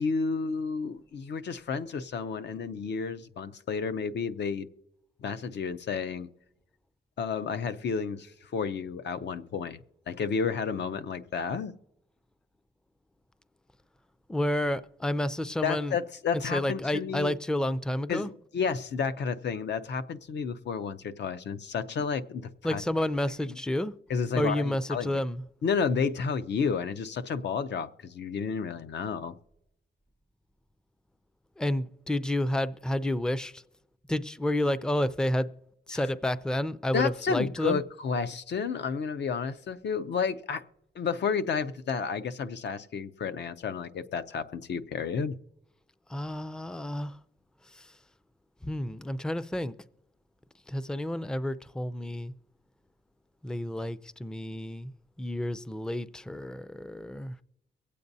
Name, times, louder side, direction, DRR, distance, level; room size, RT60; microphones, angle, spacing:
voice 1, 0.0-4.7 5.2-6.3 7.2-11.7 15.6-17.4 18.1-22.8 23.5-23.6 24.1-25.2 25.6-29.3 35.9-36.0 36.9-40.6 41.0-45.4, left 5 dB, 70° left, 0.6 m, -31 dB
voice 2, 14.3-15.9 16.5-18.3 22.6-23.9 24.4-25.4 31.6-33.6 34.1-35.5 35.9-37.8 46.1-47.1 48.6-49.7 50.7-52.3 53.4-54.9 55.2-57.3, left 1 dB, 5° left, 0.4 m, -30 dB
23.5 x 8.4 x 2.7 m
wide cardioid pair, 115°, 18 cm